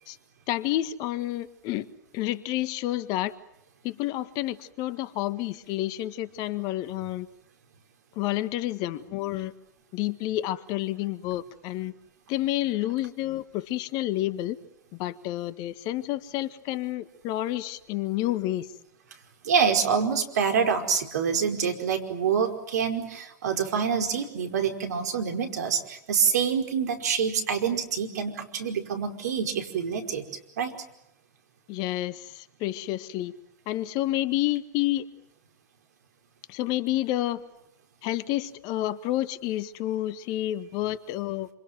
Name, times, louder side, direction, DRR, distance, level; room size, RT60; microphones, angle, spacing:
voice 1, 0.5-1.9 2.1-3.3 3.8-7.3 8.1-9.5 9.9-11.9 12.3-14.6 14.9-18.7 31.7-33.3 33.7-35.0 36.5-37.4 38.0-41.5, left 15 dB, 40° left, 14 dB, 1.6 m, -29 dB
voice 2, 19.4-30.3 30.6-30.7, right 6 dB, 65° right, 6 dB, 5.1 m, -26 dB
28.5 x 27.0 x 7.8 m, 0.82 s
figure-of-eight pair, 100°, 10 cm